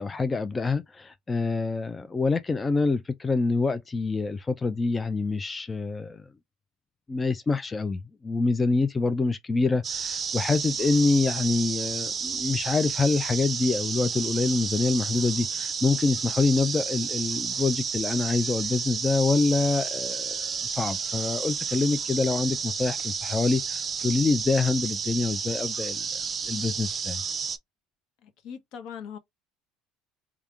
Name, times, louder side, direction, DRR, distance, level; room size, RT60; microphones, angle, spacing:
voice 1, 0.0-6.2 7.1-26.0 26.5-27.2, left 3 dB, 20° left, 0.4 m, -26 dB
sound 1, 9.8-27.6, right 6 dB, 30° right, 0.6 m, -31 dB
voice 2, 28.2-29.2, left 7 dB, 60° left, 0.9 m, -41 dB
3.5 x 2.3 x 3.2 m
supercardioid pair, 85°, 0 cm